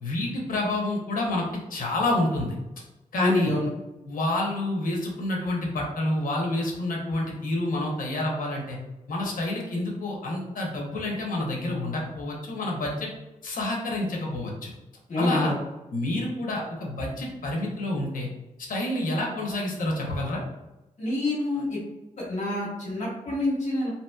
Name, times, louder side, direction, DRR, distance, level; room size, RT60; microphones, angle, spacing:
voice 1, 0.0-2.6 3.1-3.5 4.0-8.8 9.1-13.1 13.4-14.7 15.2-15.5 15.9-18.3 18.7-20.4, left 1 dB, 80° left, -1 dB, 0.8 m, -28 dB
voice 2, 3.2-3.7 15.1-15.6 21.0-21.8 22.2-23.9, left 2 dB, 60° left, -7 dB, 1.4 m, -27 dB
2.9 x 2.8 x 2.2 m, 0.99 s
wide cardioid pair, 115°, 14 cm